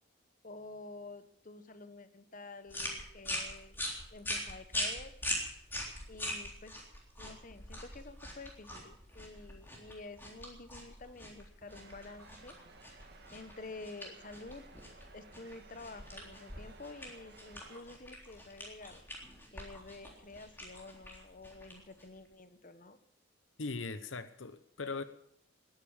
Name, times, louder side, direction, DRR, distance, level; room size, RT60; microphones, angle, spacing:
voice 1, 0.4-3.8 4.1-5.1 6.1-6.7 7.2-12.6 13.3-14.6 15.1-19.0 19.5-23.0, left 3 dB, 40° left, 10 dB, 1.1 m, -50 dB
sound 1, 2.7-22.3, left 1 dB, 10° left, 3.6 m, -43 dB
sound 2, 11.7-17.8, right 3 dB, 55° right, 2.1 m, -58 dB
voice 2, 23.6-25.0, left 3 dB, 75° left, 12 dB, 0.9 m, -39 dB
20.0 x 9.8 x 7.2 m, 0.72 s
head